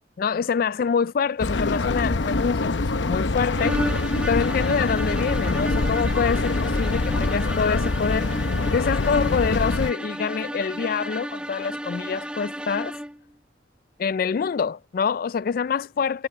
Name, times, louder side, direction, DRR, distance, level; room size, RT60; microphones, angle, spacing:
voice 1, 0.2-3.9 4.3-8.4 8.7-12.9 14.0-16.3, left 6 dB, 50° left, 0.3 m, -26 dB
sound 1, 1.4-9.9, left 3 dB, 90° left, 0.8 m, -25 dB
sound 2, 3.5-13.2, equal, 5° right, 1.0 m, -33 dB
head